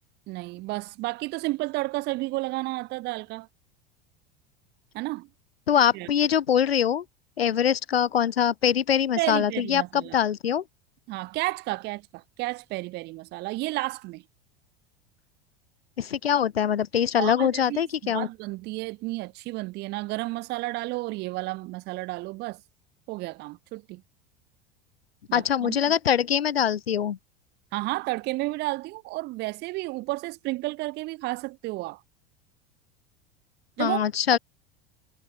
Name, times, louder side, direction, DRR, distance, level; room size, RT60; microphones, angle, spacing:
voice 1, 0.3-3.5 4.9-5.3 5.9-6.1 9.2-10.1 11.1-14.2 17.2-22.6 23.1-24.0 25.3-25.9 27.7-32.0 33.8-34.0, right 21 dB, 35° right, 0.5 m, -32 dB
voice 2, 5.7-7.0 7.4-10.6 16.0-18.3 25.3-27.2 33.8-34.4, left 9 dB, 85° left, 0.6 m, -23 dB
figure-of-eight pair, 80°, 30 cm